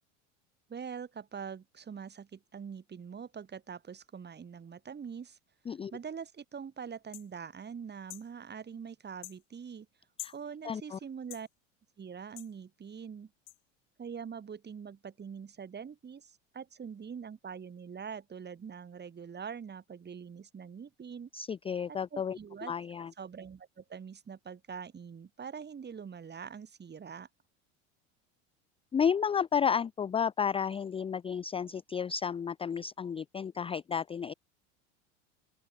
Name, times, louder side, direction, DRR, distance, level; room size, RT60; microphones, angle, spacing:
voice 1, 0.7-5.4 5.9-9.9 10.3-11.5 12.0-13.3 14.0-21.3 21.9-22.7 23.2-27.3, right 6 dB, 25° right, 4.3 m, -44 dB
sound 1, 7.1-7.3 8.1-8.3 9.2-9.4 10.2-10.4 11.3-11.5 12.4-12.5 13.5-13.6, left 28 dB, 65° left, 6.6 m, -45 dB
voice 2, 10.6-11.0 21.3-23.1 28.9-34.3, left 7 dB, 15° left, 0.5 m, -32 dB
open air
hypercardioid pair, 80°, 37 cm